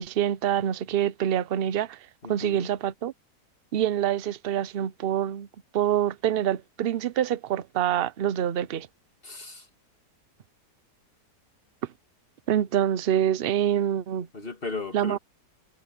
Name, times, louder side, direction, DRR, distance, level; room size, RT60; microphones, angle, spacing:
voice 1, 0.0-2.0 2.3-3.1 3.7-5.5 5.7-8.9 12.5-14.3 14.9-15.2, right 10 dB, 60° right, 0.6 m, -26 dB
voice 2, 2.2-2.7 9.2-9.7 14.3-15.2, left 3 dB, 30° left, 2.9 m, -36 dB
omnidirectional pair, 1.9 m